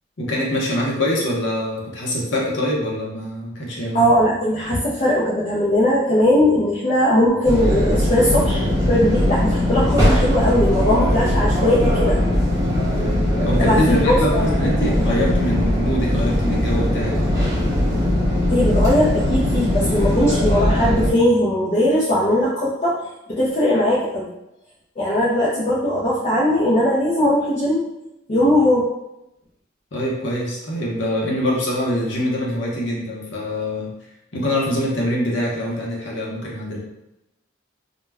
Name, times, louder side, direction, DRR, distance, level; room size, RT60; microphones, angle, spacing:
voice 1, 0.2-4.1 13.4-17.4 29.9-33.9 34.3-36.8, equal, 70° left, -3 dB, 0.7 m, -24 dB
voice 2, 3.9-12.2 13.6-15.1 18.5-24.3 25.0-27.9 28.3-28.9, left 1 dB, 35° left, -8 dB, 0.5 m, -19 dB
sound 1, 7.4-21.1, left 1 dB, 15° right, 0.7 m, -20 dB
2.2 x 2.2 x 3.3 m, 0.88 s
head